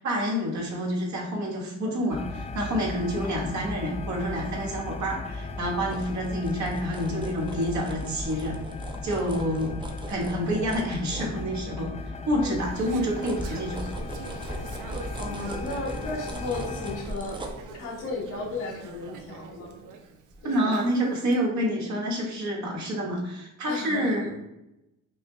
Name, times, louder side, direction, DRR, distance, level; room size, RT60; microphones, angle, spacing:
voice 1, 0.0-8.6 9.0-9.8 10.1-13.9 20.4-24.4, equal, 65° right, -2 dB, 1.5 m, -28 dB
sound 1, 2.1-17.0, left 3 dB, 20° left, 0.4 m, -37 dB
sound 2, 5.7-11.9 12.4-19.9 20.3-20.4, right 1 dB, 15° right, 0.6 m, -41 dB
voice 2, 12.4-13.0 15.2-17.4 17.7-19.7 20.4-20.8 23.7-24.2, left 3 dB, 80° left, -1 dB, 1.2 m, -35 dB
Conversation / Chatter, 12.4-21.4, right 5 dB, 90° right, 0.6 m, -43 dB
5.3 x 2.0 x 3.3 m, 0.88 s
cardioid pair, 90°, 30 cm